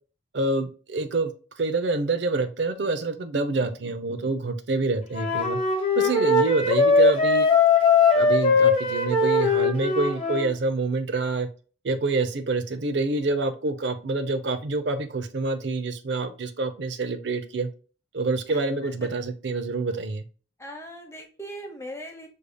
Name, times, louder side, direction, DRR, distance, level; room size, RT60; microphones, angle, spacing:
voice 1, 0.3-5.6 6.0-7.5 8.1-11.5 11.8-17.7 18.1-20.2, right 3 dB, 60° right, 8 dB, 0.6 m, -27 dB
Wind instrument woodwind instrument, 5.1-10.5, left 4 dB, 30° left, 1.1 m, -20 dB
voice 2, 20.6-22.3, equal, 15° left, 3 dB, 0.9 m, -39 dB
6.5 x 3.4 x 2.2 m, 0.37 s
head